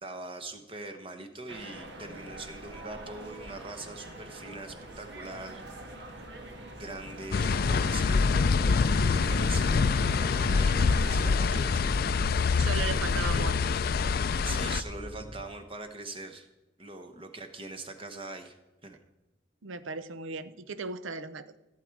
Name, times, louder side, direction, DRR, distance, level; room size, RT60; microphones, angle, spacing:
voice 1, 0.0-5.9 6.8-8.4 9.1-11.8 14.4-16.5 16.8-18.6 18.8-19.0, right 2 dB, 30° right, 7 dB, 1.1 m, -42 dB
sound 1, 1.5-11.4, right 1 dB, 60° right, 1.6 m, -44 dB
sound 2, 2.2-15.4, left 1 dB, 25° left, 0.8 m, -47 dB
sound 3, 7.3-14.8, left 5 dB, 50° left, 0.4 m, -25 dB
voice 2, 12.6-13.5 19.6-21.6, right 4 dB, 90° right, 13 dB, 0.7 m, -36 dB
15.5 x 7.5 x 4.7 m, 1.0 s
head